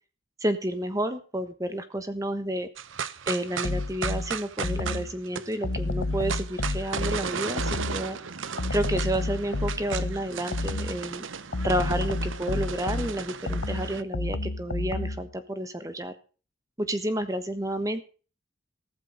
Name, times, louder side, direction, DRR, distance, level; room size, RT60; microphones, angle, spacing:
voice 1, 0.4-2.7 3.3-8.2 8.7-11.2 11.6-16.1 16.8-18.0, right 1 dB, 15° right, 10 dB, 1.2 m, -30 dB
sound 1, 2.8-14.0, right 6 dB, 75° right, 1.0 m, -36 dB
sound 2, 3.6-5.2 5.6-8.1 8.6-11.1 11.5-15.3, left 2 dB, 80° left, 0.9 m, -30 dB
15.5 x 13.0 x 4.0 m, 0.37 s
head